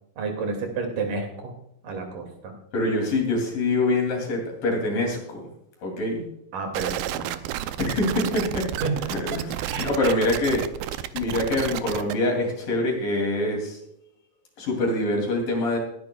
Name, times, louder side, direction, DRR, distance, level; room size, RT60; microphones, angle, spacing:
voice 1, 0.2-1.5 1.8-2.5 6.5-7.4 8.8-9.1 9.6-10.1, right 4 dB, 65° right, 3 dB, 3.9 m, -30 dB
voice 2, 2.7-5.4 5.8-6.2 7.8-8.6 9.1-10.6 11.1-13.8 14.6-15.8, left 2 dB, 65° left, 1 dB, 4.5 m, -25 dB
sound 1, 6.7-12.1, right 13 dB, 80° right, 2.4 m, -31 dB
21.0 x 10.5 x 2.4 m, 0.78 s
omnidirectional pair, 4.2 m